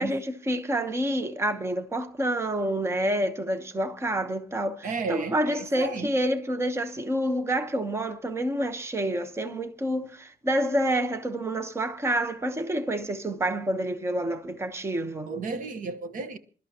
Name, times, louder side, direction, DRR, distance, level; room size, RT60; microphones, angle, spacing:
voice 1, 0.0-15.3, right 1 dB, 15° right, 1.0 m, -28 dB
voice 2, 4.8-6.1 15.3-16.4, right 4 dB, 55° right, 1.3 m, -33 dB
27.5 x 12.5 x 2.9 m
cardioid pair, 155°, 16 cm